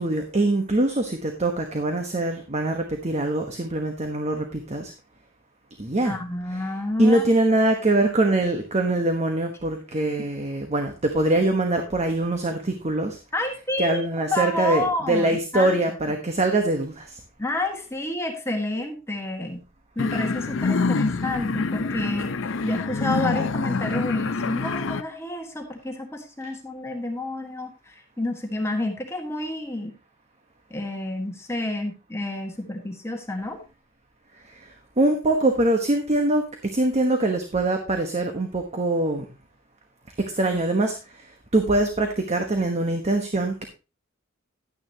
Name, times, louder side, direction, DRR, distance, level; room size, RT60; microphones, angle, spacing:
voice 1, 0.0-4.9 5.8-6.2 6.5-6.6 7.0-13.2 13.8-17.1 35.0-39.3 40.2-40.9 41.5-43.6, right 2 dB, 35° right, 5 dB, 1.2 m, -23 dB
voice 2, 6.0-7.2 13.3-14.0 14.3-15.8 17.4-19.6 19.9-22.3 22.6-29.9 30.7-33.6, left 1 dB, 15° left, 2 dB, 1.5 m, -29 dB
sound 1, 20.0-25.0, left 4 dB, 70° left, 0.6 m, -26 dB
11.0 x 9.7 x 2.9 m, 0.30 s
head